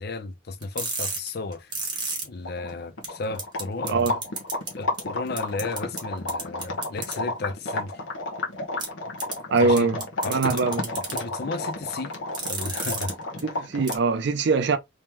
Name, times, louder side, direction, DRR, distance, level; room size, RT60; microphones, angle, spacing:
voice 1, 0.0-1.7 2.2-4.2 4.8-8.0 9.6-9.9 10.2-12.1 12.5-13.1 13.6-13.7, left 3 dB, 55° left, 0.6 m, -34 dB
sound 1, 0.6-2.2 2.7-2.8 3.0-3.1 3.4-3.6 3.9-4.7 5.0-5.1 5.4-6.0 6.3-7.1 8.8-8.9 9.2-9.3 9.8-11.2 12.1-13.1 13.4-13.5 13.9-14.0, right 4 dB, 25° right, 1.4 m, -30 dB
sound 2, 2.1-2.2 2.4-14.1, left 2 dB, 80° left, 1.0 m, -32 dB
voice 2, 9.5-10.0 10.3-10.8 13.4-14.8, right 4 dB, 60° right, 0.4 m, -22 dB
3.5 x 3.0 x 2.9 m
head